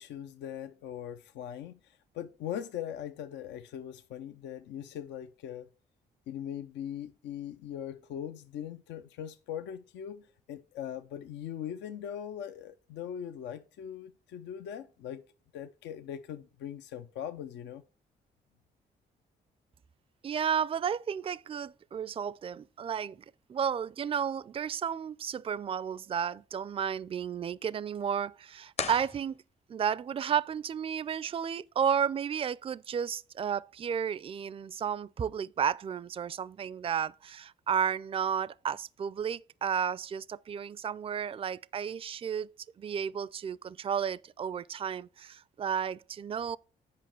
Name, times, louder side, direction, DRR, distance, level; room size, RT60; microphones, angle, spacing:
voice 1, 0.0-5.7 6.3-15.2 15.5-17.8, left 10 dB, 90° left, 0.5 m, -40 dB
voice 2, 20.2-23.2 23.5-29.4 29.7-46.6, right 8 dB, 30° right, 0.4 m, -32 dB
sound 1, 28.7-29.9, left 5 dB, 35° left, 0.7 m, -38 dB
8.7 x 5.2 x 4.4 m
cardioid pair, 70°, 18 cm